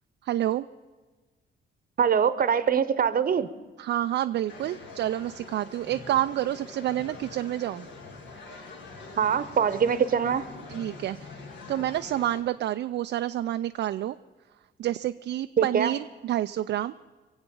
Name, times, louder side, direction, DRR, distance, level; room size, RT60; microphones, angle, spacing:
voice 1, 0.2-0.7 3.8-7.9 10.7-11.4 11.7-14.2 14.8-16.9, right 13 dB, 65° right, 9 dB, 0.4 m, -29 dB
voice 2, 2.0-3.5 9.2-10.5 15.6-15.9, right 7 dB, 45° right, 14 dB, 0.9 m, -23 dB
sound 1, 4.5-12.4, left 3 dB, 65° left, 2.1 m, -44 dB
23.5 x 8.0 x 7.0 m, 1.3 s
cardioid pair, 90°, 20 cm